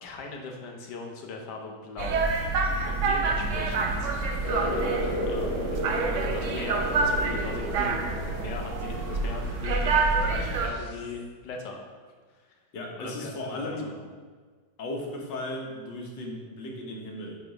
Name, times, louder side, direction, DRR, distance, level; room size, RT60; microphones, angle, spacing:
voice 1, 0.0-2.3 2.8-4.1 4.5-5.8 6.1-9.9 10.2-11.8 12.3-12.4 12.9-14.1, left 4 dB, 70° left, 1 dB, 1.5 m, -39 dB
sound 1, 2.0-10.7, right 3 dB, 65° right, 0.8 m, -27 dB
sound 2, 4.4-10.6, left 1 dB, 45° left, 1.3 m, -34 dB
sound 3, 4.6-11.3, right 2 dB, 50° right, 1.1 m, -44 dB
voice 2, 12.7-13.9 14.8-17.4, left 1 dB, 85° left, 0 dB, 1.8 m, -36 dB
7.5 x 3.4 x 5.0 m, 1.5 s
omnidirectional pair, 1.9 m